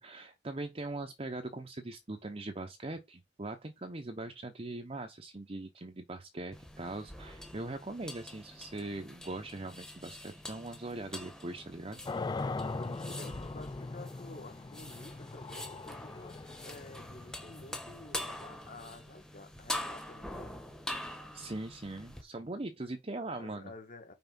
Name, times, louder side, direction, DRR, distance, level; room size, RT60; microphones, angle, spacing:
voice 1, 0.0-12.0 21.3-23.7, right 2 dB, 35° right, 0.9 m, -41 dB
sound 1, 6.5-22.2, left 1 dB, 5° left, 1.2 m, -44 dB
sound 2, 12.1-19.0, left 3 dB, 25° left, 0.3 m, -41 dB
voice 2, 12.8-20.6 23.4-24.1, left 2 dB, 45° left, 1.8 m, -50 dB
5.8 x 4.7 x 5.5 m
head